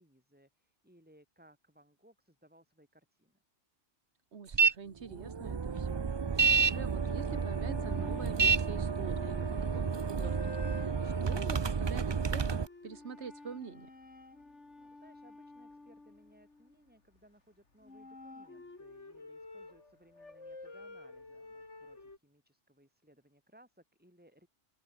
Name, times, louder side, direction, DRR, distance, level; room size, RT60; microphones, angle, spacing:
voice 1, 0.0-3.4 14.5-24.5, equal, 5° right, 7.3 m, -64 dB
voice 2, 4.3-13.9, right 6 dB, 65° right, 1.6 m, -46 dB
sound 1, 4.5-4.7 5.1-12.7, right 5 dB, 40° right, 0.4 m, -30 dB
sound 2, 7.0-17.2 17.8-22.2, left 3 dB, 70° left, 4.0 m, -51 dB
open air
omnidirectional pair, 1.2 m